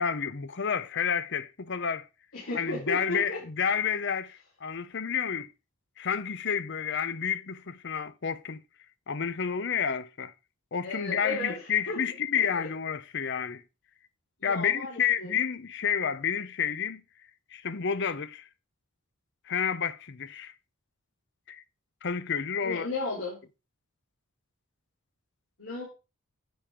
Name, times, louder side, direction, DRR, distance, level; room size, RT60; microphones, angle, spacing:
voice 1, 0.0-2.1 2.5-5.5 6.0-8.6 9.1-10.3 10.7-13.6 14.4-17.0 17.5-18.5 19.5-20.5 21.5-21.6 22.0-22.9, left 7 dB, 55° left, 0.7 m, -30 dB
voice 2, 2.3-3.4 10.8-12.0 12.3-12.5 14.4-15.3 22.6-23.4 25.6-25.9, left 2 dB, 70° left, 4.0 m, -34 dB
10.0 x 6.7 x 3.7 m
head